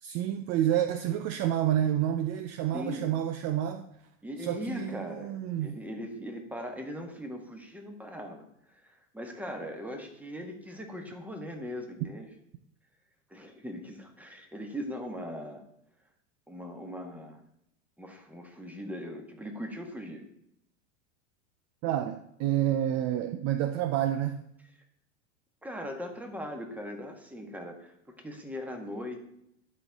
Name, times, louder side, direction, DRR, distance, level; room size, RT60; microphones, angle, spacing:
voice 1, 0.0-3.8 4.4-5.7 12.0-12.1 21.8-24.5, right 11 dB, 40° right, 9 dB, 0.5 m, -29 dB
voice 2, 2.7-3.1 4.2-12.3 13.3-15.6 16.5-17.4 18.0-20.3 25.6-29.2, equal, 5° right, 4 dB, 1.4 m, -40 dB
11.5 x 4.5 x 3.5 m, 0.78 s
hypercardioid pair, 95°, 40 cm